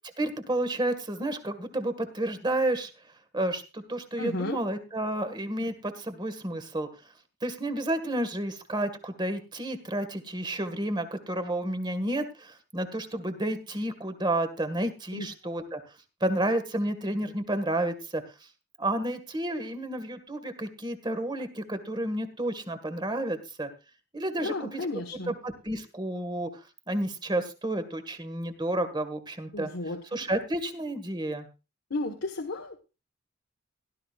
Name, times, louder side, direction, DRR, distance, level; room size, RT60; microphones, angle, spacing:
voice 1, 0.2-2.9 3.3-6.9 7.4-15.8 16.2-18.2 18.8-23.7 24.1-24.9 25.3-26.6 26.9-29.7 30.1-31.5, right 1 dB, 25° right, 10 dB, 1.8 m, -31 dB
voice 2, 4.2-4.6 15.1-15.3 24.4-25.3 29.5-30.2 31.9-32.8, left 2 dB, 80° left, 3 dB, 1.5 m, -33 dB
17.0 x 12.5 x 2.5 m, 0.30 s
head